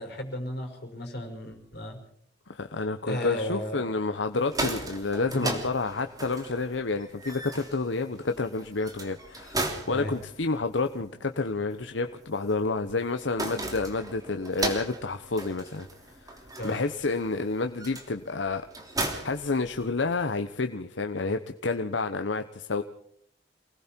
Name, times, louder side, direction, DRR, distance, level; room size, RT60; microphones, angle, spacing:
voice 1, 0.0-2.0 3.0-3.8 5.3-5.6 9.9-10.1 16.6-16.8, left 1 dB, 60° left, 3 dB, 5.3 m, -34 dB
voice 2, 2.5-15.9 16.2-18.7 19.0-22.8, left 3 dB, 85° left, 7 dB, 1.0 m, -29 dB
sound 1, 4.3-20.2, right 2 dB, 20° right, 3.3 m, -37 dB
28.5 x 20.0 x 4.5 m, 0.67 s
head